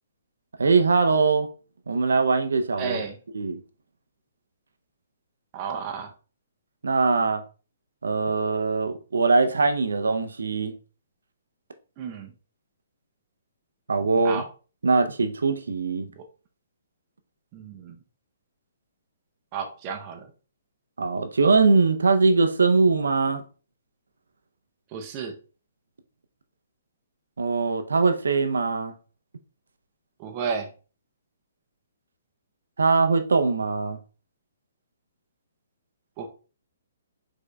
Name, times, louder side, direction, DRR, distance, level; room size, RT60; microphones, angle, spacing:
voice 1, 0.6-1.5 1.9-3.0 3.3-3.6 6.8-7.4 8.0-10.7 13.9-14.4 14.8-16.1 21.0-23.4 27.4-28.9 32.8-34.0, right 4 dB, 75° right, 0.5 m, -22 dB
voice 2, 2.8-3.2 5.5-6.1 12.0-12.3 14.2-14.5 16.2-16.3 17.5-17.9 19.5-20.3 24.9-25.4 30.2-30.7 36.2-36.3, right 6 dB, 35° right, 0.6 m, -32 dB
5.1 x 3.6 x 2.2 m
figure-of-eight pair, 130°, 0 cm